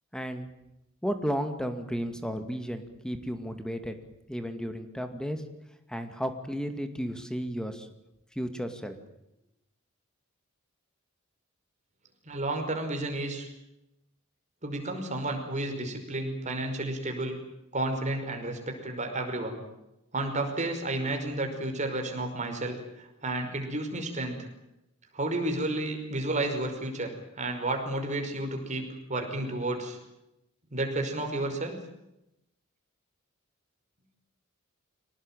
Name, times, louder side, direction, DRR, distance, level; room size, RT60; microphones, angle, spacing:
voice 1, 0.1-0.5 1.0-4.0 4.3-5.4 5.9-7.9 8.4-9.0, equal, 5° left, 8 dB, 2.3 m, -33 dB
voice 2, 12.3-13.5 14.6-17.4 17.7-19.6 20.1-24.5 25.1-30.0 30.7-31.8, right 2 dB, 35° right, 3 dB, 5.4 m, -32 dB
25.0 x 18.5 x 9.1 m, 0.88 s
head